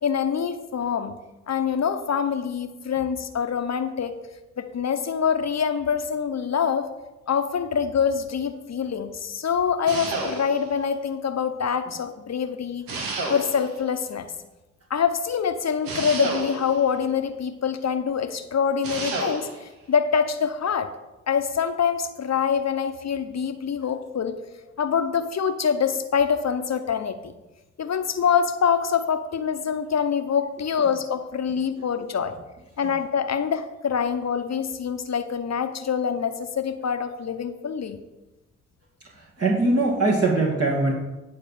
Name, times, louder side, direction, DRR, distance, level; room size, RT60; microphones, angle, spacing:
voice 1, 0.0-1.1 1.5-4.2 4.6-6.9 7.3-12.9 13.3-14.3 14.9-20.9 21.3-24.4 24.8-27.3 27.8-32.3 32.8-38.0, left 7 dB, 55° left, 8 dB, 0.9 m, -25 dB
sound 1, 9.9-10.8 12.9-13.8 15.8-16.9 18.8-19.6, right 3 dB, 90° right, 1.4 m, -31 dB
voice 2, 39.2-40.9, right 2 dB, 45° right, -3 dB, 2.3 m, -21 dB
10.5 x 4.3 x 7.3 m, 1.0 s
supercardioid pair, 40°, 33 cm